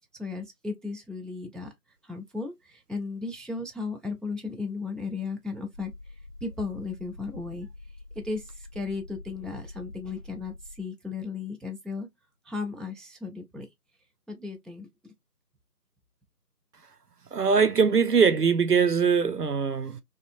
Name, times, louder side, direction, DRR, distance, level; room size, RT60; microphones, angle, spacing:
voice 1, 0.2-1.7 2.0-5.9 6.4-7.7 8.2-12.1 12.4-13.7 14.3-15.1, left 4 dB, ahead, 0.5 m, -35 dB
sound 1, 5.7-10.9, left 2 dB, 50° left, 0.6 m, -45 dB
voice 2, 17.3-20.0, right 6 dB, 75° right, 0.6 m, -22 dB
2.5 x 2.5 x 2.6 m
figure-of-eight pair, 180°, 48 cm